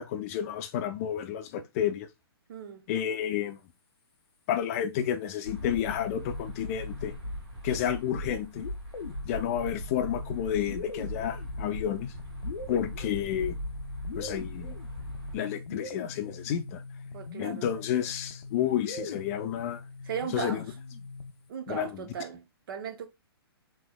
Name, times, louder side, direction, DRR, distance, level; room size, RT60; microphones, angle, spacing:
voice 1, 0.0-2.1 2.9-3.6 4.5-7.1 7.6-8.6 9.2-12.1 12.7-13.6 14.2-14.8 15.3-16.8 17.4-19.8 20.3-20.6 21.7-22.0, left 10 dB, 35° left, 0.5 m, -31 dB
voice 2, 2.5-2.9 17.1-17.7 20.1-20.6 21.5-23.1, right 8 dB, 60° right, 0.8 m, -37 dB
sound 1, 5.4-15.4, equal, 80° right, 1.4 m, -39 dB
sound 2, 5.5-7.6 8.6-21.5, left 4 dB, 85° left, 0.5 m, -42 dB
3.2 x 3.0 x 2.3 m
hypercardioid pair, 140°, 13 cm